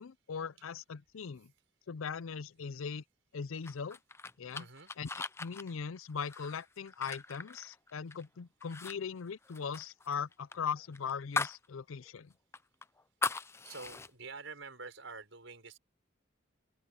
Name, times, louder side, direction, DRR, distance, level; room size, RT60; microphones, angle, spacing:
voice 1, 0.0-1.5 1.9-3.0 3.3-4.0 4.4-4.7 5.0-5.1 5.4-12.3, left 6 dB, 85° left, 0.5 m, -40 dB
sound 1, 3.6-8.3 8.6-9.0 9.2-11.7 12.0-12.1 12.5-14.1, left 3 dB, 15° left, 0.4 m, -39 dB
voice 2, 4.5-4.9 13.3-15.8, right 4 dB, 65° right, 6.4 m, -48 dB
open air
head